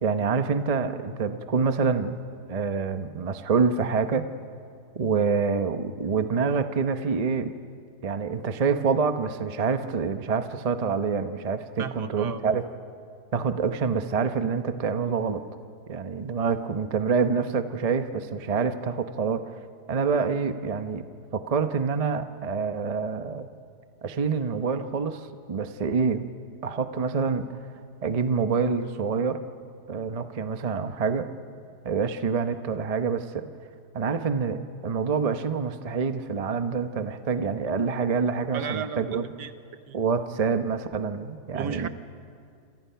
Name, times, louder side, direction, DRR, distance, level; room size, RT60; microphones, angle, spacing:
voice 1, 0.0-2.1 2.5-4.3 4.9-7.5 8.0-12.6 13.3-15.4 15.9-19.4 19.9-21.0 21.3-23.5 24.0-26.3 26.6-27.6 28.0-29.4 29.9-31.3 31.8-33.5 33.9-39.3 39.9-41.9, right 5 dB, 35° right, 9 dB, 0.6 m, -26 dB
voice 2, 11.8-12.4 38.5-39.5 39.9-40.0 41.5-41.9, right 8 dB, 70° right, 10 dB, 1.5 m, -34 dB
28.0 x 27.0 x 5.8 m, 2.3 s
omnidirectional pair, 1.9 m